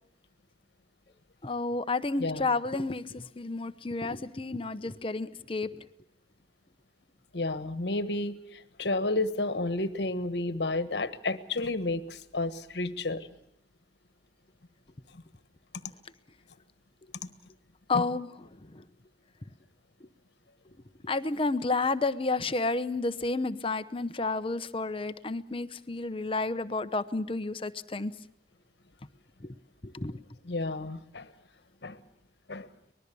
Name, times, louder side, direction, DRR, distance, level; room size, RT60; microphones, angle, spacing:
voice 1, 1.4-5.9 17.9-18.3 18.6-18.8 21.0-28.1 29.4-29.5 29.8-30.2, left 3 dB, 30° left, 12 dB, 0.8 m, -31 dB
voice 2, 7.3-13.3 17.9-18.0 30.5-31.3 31.8-32.0 32.5-32.7, left 2 dB, 75° left, 13 dB, 1.4 m, -31 dB
24.5 x 20.5 x 7.0 m, 0.78 s
head